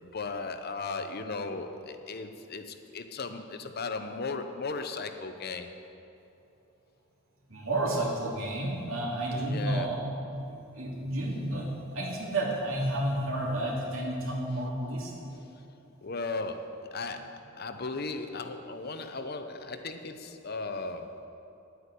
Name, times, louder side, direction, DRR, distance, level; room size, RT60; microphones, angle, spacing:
voice 1, 0.0-5.7 9.3-9.9 16.0-21.2, left 3 dB, 50° left, 7 dB, 0.8 m, -36 dB
voice 2, 7.5-15.3, right 1 dB, 75° right, -3 dB, 2.8 m, -31 dB
10.5 x 9.5 x 8.3 m, 2.8 s
head